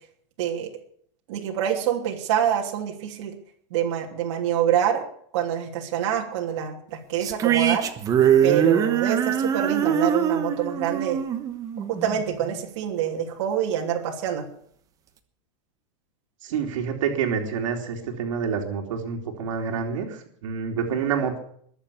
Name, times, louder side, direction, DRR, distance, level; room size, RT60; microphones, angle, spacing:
voice 1, 0.4-0.7 1.3-3.3 3.7-5.0 5.3-7.9 8.4-11.2 11.9-14.5, right 9 dB, 60° right, 0 dB, 3.0 m, -26 dB
sound 1, 7.2-12.6, right 9 dB, 20° right, 1.2 m, -23 dB
voice 2, 16.4-21.4, right 6 dB, 80° right, 3 dB, 3.0 m, -28 dB
21.5 x 7.2 x 8.5 m, 0.63 s
supercardioid pair, 170°, 16 cm